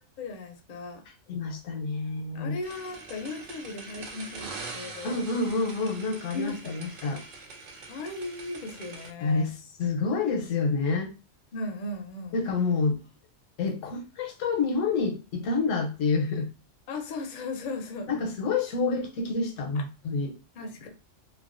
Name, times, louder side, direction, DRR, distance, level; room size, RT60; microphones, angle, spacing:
voice 1, 0.2-1.0 2.3-5.2 6.3-6.9 7.9-9.5 11.5-12.4 16.9-18.1 19.7-19.8 20.6-20.9, left 2 dB, 60° left, 0.5 m, -37 dB
voice 2, 1.3-2.6 5.0-7.2 9.2-11.1 12.3-13.0 13.6-16.5 18.1-20.3, left 4 dB, 85° left, 1.0 m, -28 dB
sound 1, 2.6-9.1, right 3 dB, 90° right, 0.9 m, -43 dB
2.4 x 2.2 x 2.4 m
omnidirectional pair, 1.3 m